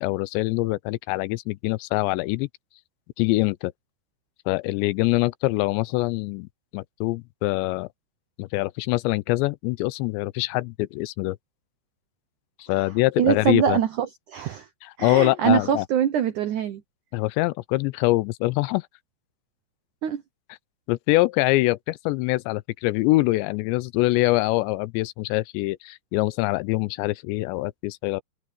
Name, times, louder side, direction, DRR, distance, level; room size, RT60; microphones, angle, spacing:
voice 1, 0.0-2.5 3.2-3.7 4.5-6.5 6.7-7.9 8.4-11.4 12.6-13.8 14.8-15.9 17.1-18.9 20.9-28.2, left 20 dB, 85° left, 2.8 m, -24 dB
voice 2, 13.2-14.7 15.0-16.8 20.0-20.2, right 9 dB, 85° right, 1.7 m, -23 dB
omnidirectional pair, 5.1 m